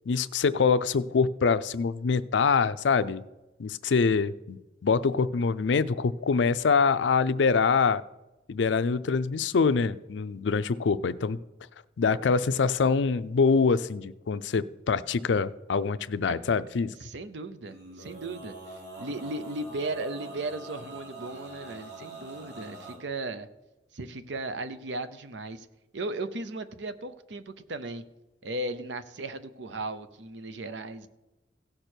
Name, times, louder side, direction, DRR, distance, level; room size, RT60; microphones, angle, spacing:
voice 1, 0.1-3.2 3.6-8.0 8.5-11.4 12.0-16.9, left 5 dB, 90° left, 15 dB, 0.5 m, -25 dB
voice 2, 17.0-18.5 19.0-23.5 23.9-25.7 25.9-28.0 28.4-31.1, right 2 dB, 85° right, 12 dB, 0.8 m, -36 dB
Male singing, 17.6-23.0, right 2 dB, 65° right, 2.8 m, -44 dB
16.0 x 6.7 x 4.5 m, 1.0 s
head